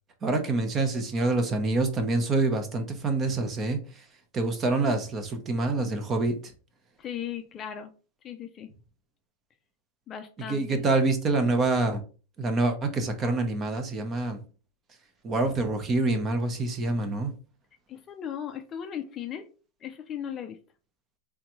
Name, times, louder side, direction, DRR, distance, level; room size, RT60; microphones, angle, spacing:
voice 1, 0.2-4.0 4.3-6.3 10.5-12.0 12.4-14.4 15.2-17.3, right 3 dB, 20° right, 7 dB, 0.8 m, -26 dB
voice 2, 7.0-7.9 8.2-8.7 10.1-10.8 17.9-19.5 19.8-20.6, left 9 dB, 25° left, 7 dB, 0.4 m, -37 dB
3.8 x 3.5 x 3.0 m, 0.36 s
supercardioid pair, 155°, 0 cm